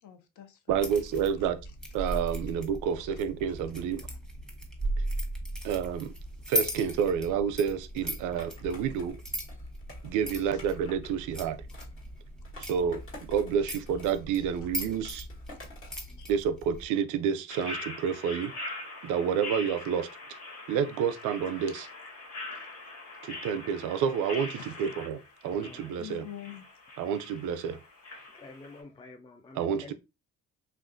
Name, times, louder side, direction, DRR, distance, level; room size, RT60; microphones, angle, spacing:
voice 1, 0.0-1.0 1.4-1.5 4.1-4.2 10.4-10.5 14.4-14.5 15.5-16.3 24.5-24.9 26.0-26.7, left 11 dB, 75° left, 0.7 m, -47 dB
sound 1, 0.7-16.9, right 1 dB, ahead, 0.9 m, -38 dB
voice 2, 0.7-1.6 1.9-4.1 5.6-6.1 6.5-9.2 10.0-11.6 12.6-15.3 16.3-18.5 19.0-20.1 20.7-21.9 23.2-26.2 27.0-27.8 29.6-29.9, right 7 dB, 90° right, 0.4 m, -29 dB
Skateboard, 8.4-11.1 11.7-13.6 13.8-16.1, left 1 dB, 45° left, 1.3 m, -50 dB
sound 2, 17.5-28.8, left 2 dB, 60° left, 1.6 m, -43 dB
voice 3, 25.6-25.9 28.3-29.9, left 3 dB, 15° left, 0.4 m, -48 dB
3.3 x 2.4 x 2.5 m
cardioid pair, 90°, 30 cm